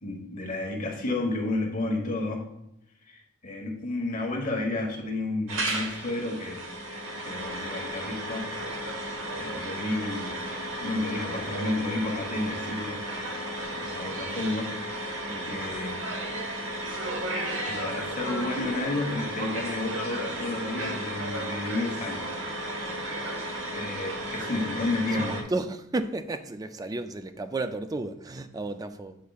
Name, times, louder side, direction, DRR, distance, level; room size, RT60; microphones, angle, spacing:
voice 1, 0.0-2.4 3.1-6.7 7.2-8.5 9.3-10.4 10.8-13.3 13.7-15.1 15.4-16.1 17.6-22.4 23.4-25.5, left 2 dB, 40° left, 1.2 m, -31 dB
sound 1, 5.5-25.4, right 1 dB, 70° right, 1.0 m, -34 dB
voice 2, 25.2-29.2, right 2 dB, 20° right, 0.3 m, -33 dB
8.3 x 5.1 x 2.4 m
head